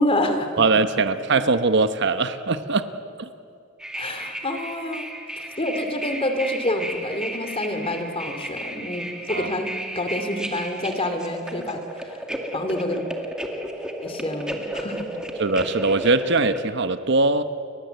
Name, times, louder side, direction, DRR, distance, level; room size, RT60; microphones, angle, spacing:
voice 1, 0.0-0.5 3.9-5.1 5.4-12.2 12.5-13.0 14.0-15.1, left 1 dB, 30° left, 7 dB, 2.6 m, -27 dB
voice 2, 0.6-2.9 3.2-3.3 9.3-9.5 15.4-17.4, right 3 dB, 60° right, 11 dB, 1.0 m, -21 dB
sound 1, 3.8-16.6, right 1 dB, 5° right, 2.3 m, -33 dB
30.0 x 23.0 x 8.1 m, 2.6 s
head